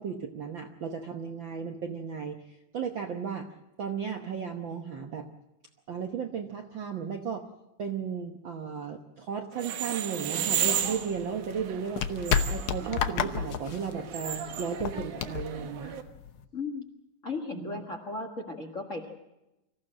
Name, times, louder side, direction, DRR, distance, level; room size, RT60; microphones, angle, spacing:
voice 1, 0.0-3.5 3.8-5.3 5.9-7.5 7.8-16.0 17.5-17.8, right 6 dB, 60° right, 4 dB, 1.3 m, -35 dB
sound 1, 9.5-16.0, right 9 dB, 75° right, 2.7 m, -34 dB
sound 2, 10.5-16.4, left 8 dB, 65° left, 1.4 m, -32 dB
voice 2, 16.5-16.9 17.2-19.1, left 3 dB, 35° left, 4 dB, 1.5 m, -36 dB
25.5 x 15.0 x 7.7 m, 0.94 s
omnidirectional pair, 3.5 m